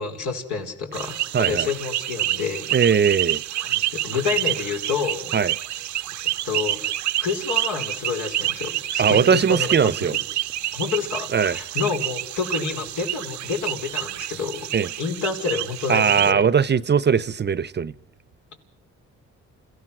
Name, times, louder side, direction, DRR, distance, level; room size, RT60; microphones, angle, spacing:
voice 1, 0.0-2.7 3.6-5.3 6.4-6.9 7.2-9.9 10.7-14.7 15.0-16.5, left 5 dB, 80° left, 4.7 m, -28 dB
sound 1, 0.9-16.3, right 14 dB, 70° right, 0.7 m, -28 dB
voice 2, 1.3-1.7 2.7-3.4 5.3-5.5 9.0-10.2 11.3-11.6 14.7-14.9 15.9-17.9, right 7 dB, 35° right, 0.7 m, -20 dB
30.0 x 16.0 x 6.1 m
cardioid pair, 90°, 30 cm